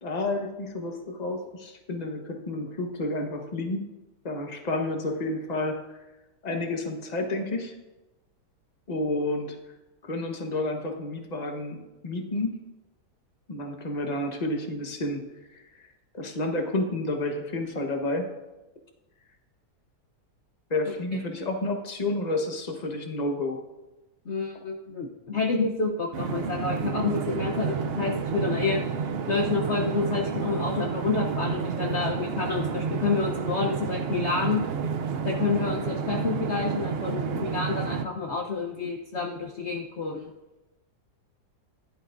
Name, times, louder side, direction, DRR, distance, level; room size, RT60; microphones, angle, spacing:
voice 1, 0.0-3.9 4.2-6.0 6.4-7.7 8.9-9.6 10.0-12.6 13.5-15.2 15.5-15.8 16.1-18.3 20.7-23.6, left 2 dB, 25° left, 3 dB, 1.2 m, -30 dB
voice 2, 24.3-28.8 29.3-34.6 35.2-40.3, left 4 dB, 50° left, 1 dB, 1.0 m, -28 dB
sound 1, 26.1-38.0, right 6 dB, 85° right, 0.5 m, -30 dB
15.0 x 11.0 x 2.6 m, 1.0 s
omnidirectional pair, 1.8 m